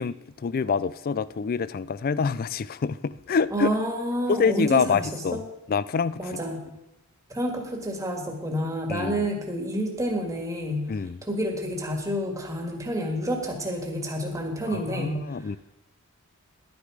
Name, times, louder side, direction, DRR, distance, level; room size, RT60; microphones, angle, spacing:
voice 1, 0.0-3.7 4.3-5.4 5.7-6.3 8.9-9.3 10.9-11.2 14.7-15.6, left 5 dB, 40° left, 0.3 m, -26 dB
voice 2, 3.5-5.4 6.2-6.6 7.3-10.8 11.2-15.2, equal, 15° right, 1.7 m, -29 dB
11.5 x 9.6 x 4.9 m
head